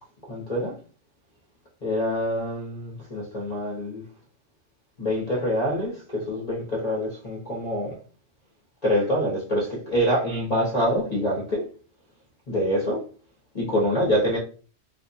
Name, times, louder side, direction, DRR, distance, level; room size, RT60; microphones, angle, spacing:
voice 1, 0.3-0.7 1.8-4.0 5.0-8.0 8.8-11.6 12.5-13.0 13.5-14.4, equal, 35° left, 1.0 m, -25 dB
2.7 x 2.4 x 4.0 m
omnidirectional pair, 1.4 m